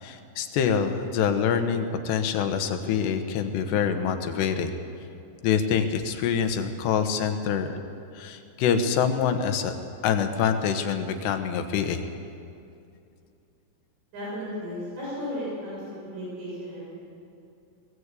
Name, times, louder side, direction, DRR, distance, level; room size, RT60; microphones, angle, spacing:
voice 1, 0.0-4.8 5.4-7.8 8.1-9.7 10.0-12.1, left 7 dB, 75° left, 7 dB, 3.2 m, -25 dB
voice 2, 14.1-16.9, equal, 75° right, -6 dB, 9.8 m, -34 dB
21.5 x 18.5 x 8.3 m, 2.6 s
omnidirectional pair, 5.2 m